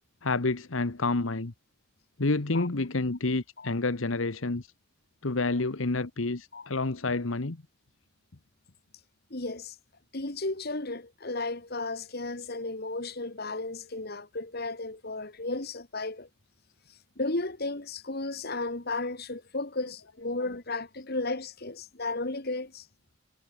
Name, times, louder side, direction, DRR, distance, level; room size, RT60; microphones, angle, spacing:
voice 1, 0.2-1.5 2.2-4.7 5.2-7.6, left 3 dB, 75° left, 1.2 m, -29 dB
voice 2, 9.3-9.8 10.1-16.3 17.2-22.9, left 2 dB, 50° left, 2.1 m, -34 dB
head